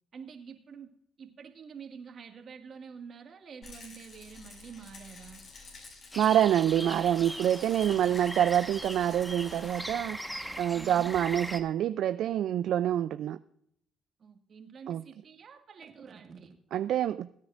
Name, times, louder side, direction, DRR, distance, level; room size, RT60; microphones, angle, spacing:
voice 1, 0.1-0.9 1.2-5.4 10.7-11.1 14.2-16.6, right 6 dB, 55° right, 1.9 m, -47 dB
Rattle, 3.6-9.9, left 4 dB, 55° left, 5.8 m, -50 dB
sound 1, 6.1-11.6, equal, ahead, 1.4 m, -40 dB
voice 2, 6.2-10.2 10.6-13.4 14.9-15.0 16.7-17.3, right 10 dB, 70° right, 0.4 m, -26 dB
21.0 x 9.6 x 2.6 m
supercardioid pair, 70°, 0 cm